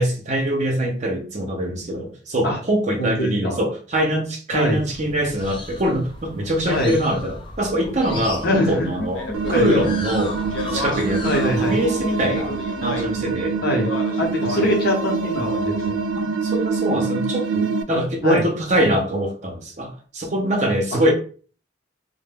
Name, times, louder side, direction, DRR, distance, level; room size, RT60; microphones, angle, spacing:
voice 1, 0.0-9.2 9.5-10.4 10.7-13.6 14.6-14.7 16.2-21.1, right 1 dB, 40° right, 2 dB, 0.6 m, -23 dB
voice 2, 3.0-3.6 4.5-4.8 6.7-7.0 8.4-9.1 9.5-9.7 11.2-11.8 13.6-13.9 14.2-15.9 17.9-18.4 20.9-21.0, left 1 dB, 55° left, 0 dB, 0.8 m, -23 dB
sound 1, 4.6-13.7, left 2 dB, 25° left, 0.3 m, -37 dB
Speech, 9.1-11.3 12.1-13.3 13.7-14.8 15.2-15.9, left 2 dB, 85° left, 0.6 m, -31 dB
sound 2, 9.3-17.8, right 5 dB, 85° right, 0.3 m, -25 dB
2.2 x 2.1 x 3.3 m, 0.40 s
head